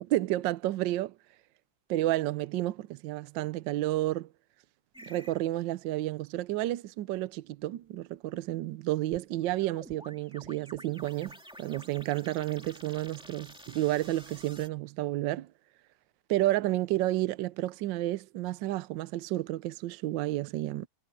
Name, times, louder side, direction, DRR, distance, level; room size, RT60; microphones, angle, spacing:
voice 1, 0.1-1.2 1.9-4.3 5.1-15.5 16.3-20.9, right 16 dB, 75° right, 1.3 m, -31 dB
sound 1, 4.9-5.4 9.1-14.7, equal, 5° right, 2.1 m, -51 dB
omnidirectional pair, 2.1 m